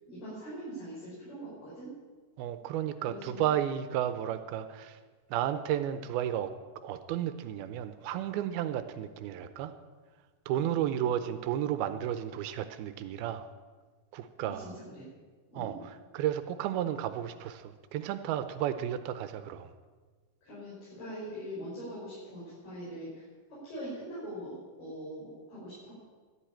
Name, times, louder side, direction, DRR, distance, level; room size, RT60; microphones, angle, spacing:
voice 1, 0.1-1.9 3.0-3.4 10.5-10.7 14.4-15.1 15.5-15.9 20.4-25.9, equal, 80° left, -8 dB, 8.0 m, -42 dB
voice 2, 2.4-5.0 5.3-9.7 10.5-13.5 14.1-14.7 15.6-19.7, right 11 dB, 90° right, 10 dB, 2.6 m, -33 dB
13.5 x 12.0 x 9.0 m, 1.4 s
omnidirectional pair, 4.4 m